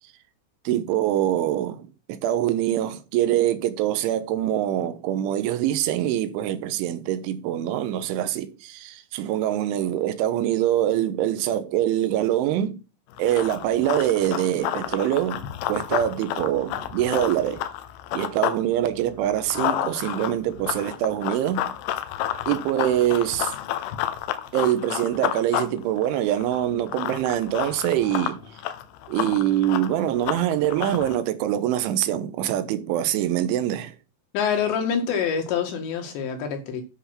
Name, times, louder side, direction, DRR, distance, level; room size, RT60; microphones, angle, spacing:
voice 1, 0.7-12.8 13.2-17.6 18.1-21.7 22.5-23.5 24.5-28.5 29.1-34.0, right 12 dB, 85° right, 3.4 m, -24 dB
Run, 13.1-18.6 19.0-31.2, left 12 dB, 90° left, 3.4 m, -30 dB
voice 2, 34.3-36.8, left 7 dB, 70° left, 4.0 m, -26 dB
10.0 x 5.9 x 5.8 m
omnidirectional pair, 5.4 m